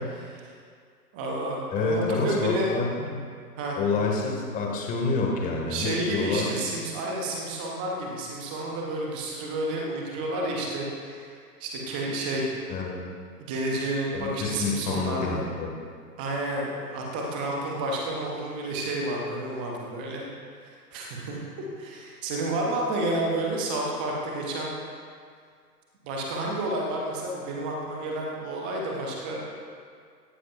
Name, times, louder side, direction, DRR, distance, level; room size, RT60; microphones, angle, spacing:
voice 1, 0.1-0.5 1.1-2.7 3.6-3.8 5.7-11.3 11.6-12.5 13.4-15.4 16.2-20.2 20.6-24.7 26.0-29.4, right 1 dB, 5° right, -1 dB, 0.5 m, -30 dB
voice 2, 1.7-3.2 3.8-6.5 12.7-13.0 14.1-15.7, left 4 dB, 15° left, 0 dB, 2.1 m, -28 dB
18.0 x 14.5 x 2.6 m, 2.1 s
figure-of-eight pair, 120°, 50 cm